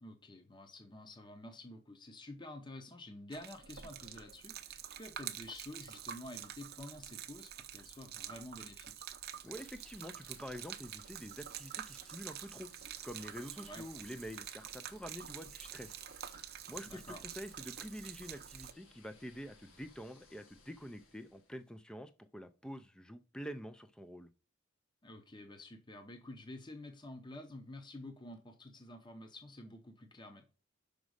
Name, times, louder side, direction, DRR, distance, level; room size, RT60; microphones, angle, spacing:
voice 1, 0.0-8.9 13.6-13.8 16.9-17.2 25.0-30.4, left 1 dB, 20° left, 0.8 m, -50 dB
Gurgling / Liquid, 3.3-18.7, right 10 dB, 50° right, 0.6 m, -47 dB
sound 1, 9.1-21.8, left 2 dB, 80° left, 2.5 m, -63 dB
voice 2, 9.4-12.7 13.0-16.0 16.7-24.3, equal, 5° left, 0.4 m, -47 dB
6.1 x 5.2 x 6.3 m
head